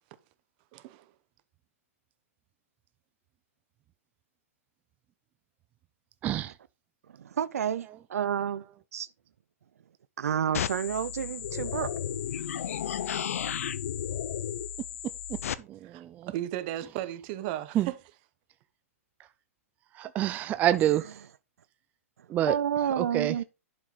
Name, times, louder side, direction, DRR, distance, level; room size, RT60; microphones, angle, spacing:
voice 1, 0.7-1.1 15.9-17.9, right 13 dB, 40° right, 1.0 m, -35 dB
voice 2, 6.2-6.6 7.9-8.0 15.3-16.3 17.7-17.9 19.2-19.3 19.9-21.3 22.3-22.6 23.0-23.4, right 12 dB, 20° right, 0.4 m, -28 dB
voice 3, 7.2-8.6 8.9-9.1 10.2-11.9 22.5-23.4, right 8 dB, 80° right, 0.5 m, -30 dB
sound 1, 10.5-15.5, left 9 dB, 70° left, 0.7 m, -33 dB
11.0 x 5.1 x 4.0 m
hypercardioid pair, 140°, 8 cm